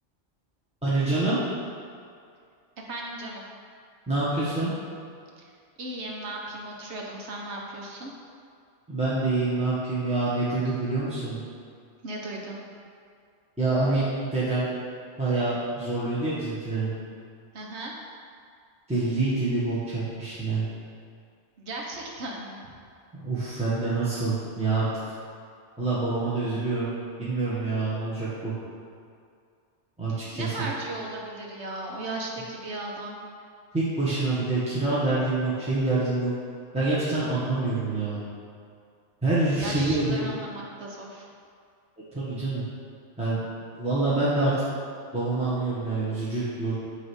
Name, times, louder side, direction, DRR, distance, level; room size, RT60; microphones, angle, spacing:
voice 1, 0.8-1.4 4.1-4.7 8.9-11.4 13.6-14.0 14.3-14.7 15.2-16.9 18.9-20.6 23.1-25.1 25.8-26.9 27.2-28.5 30.0-30.5 33.7-36.3 36.7-38.2 39.2-40.4 42.1-42.6 43.2-43.4 43.8-44.5 45.1-46.7, right 2 dB, 5° right, -11 dB, 1.4 m, -26 dB
voice 2, 2.8-3.5 5.8-8.1 12.0-12.6 17.5-17.9 21.6-22.6 30.1-33.2 39.6-41.2, right 2 dB, 70° right, -1 dB, 1.4 m, -36 dB
8.7 x 3.3 x 6.3 m, 2.3 s
omnidirectional pair, 1.2 m